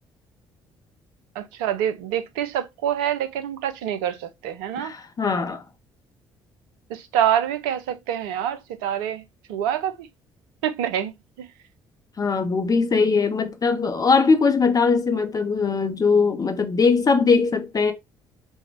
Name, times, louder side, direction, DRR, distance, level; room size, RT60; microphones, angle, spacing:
voice 1, 1.4-4.9 6.9-9.2 9.5-10.1 10.6-11.1 11.4-11.5, right 10 dB, 70° right, 0.5 m, -26 dB
voice 2, 4.8-5.6 12.2-17.9, left 4 dB, 30° left, 0.7 m, -20 dB
4.4 x 2.2 x 3.1 m
figure-of-eight pair, 45°, 12 cm